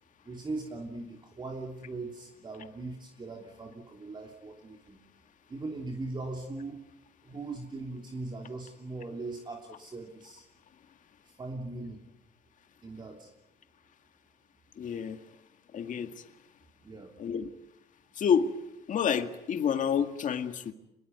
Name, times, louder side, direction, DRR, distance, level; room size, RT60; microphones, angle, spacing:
voice 1, 0.2-5.0 5.5-6.8 7.2-10.4 11.2-12.0 12.8-13.3 16.8-17.1, right 2 dB, 25° right, 2 dB, 3.2 m, -40 dB
voice 2, 14.8-15.2 15.7-16.1 17.2-17.5 18.2-18.5 18.9-20.7, left 7 dB, 50° left, 7 dB, 2.0 m, -28 dB
26.5 x 21.0 x 9.5 m, 0.88 s
cardioid pair, 110°, 17 cm